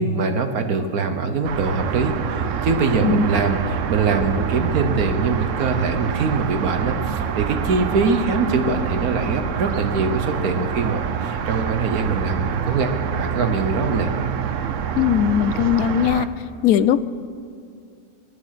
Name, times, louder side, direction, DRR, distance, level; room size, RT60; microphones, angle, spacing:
voice 1, 0.0-14.1, right 4 dB, 85° right, 7 dB, 1.6 m, -23 dB
sound 1, 1.4-16.3, right 8 dB, 65° right, 1.0 m, -26 dB
voice 2, 15.0-16.3 16.6-17.0, left 9 dB, 90° left, 15 dB, 1.1 m, -19 dB
22.5 x 9.9 x 5.9 m, 2.4 s
omnidirectional pair, 1.5 m